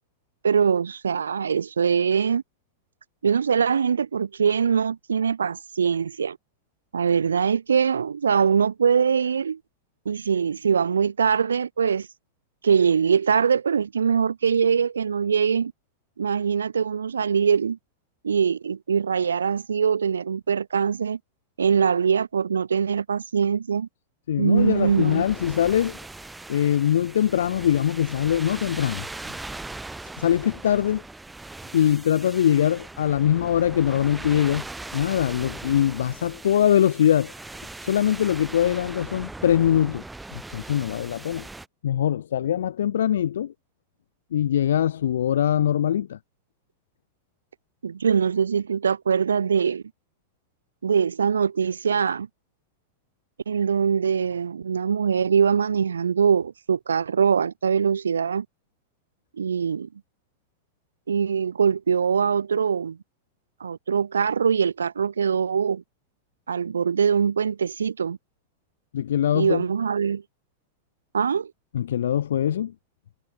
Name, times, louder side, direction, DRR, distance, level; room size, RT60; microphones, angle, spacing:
voice 1, 0.4-2.4 3.2-6.4 6.9-9.6 10.1-12.1 12.6-15.7 16.2-17.8 18.2-21.2 21.6-23.9 24.4-25.2 47.8-49.8 50.8-52.3 53.5-58.4 59.4-59.9 61.1-63.0 63.6-65.8 66.5-68.2 69.3-70.2 71.1-71.5, right 6 dB, 70° right, 1.0 m, -22 dB
voice 2, 24.3-26.0 26.5-29.0 30.2-31.0 31.7-34.7 34.9-37.3 37.8-40.0 40.3-41.5 41.8-43.5 44.3-46.2 68.9-69.6 71.7-72.7, left 10 dB, 65° left, 1.1 m, -22 dB
sound 1, 24.5-41.7, right 2 dB, 5° right, 1.8 m, -40 dB
figure-of-eight pair, 90°, 0 cm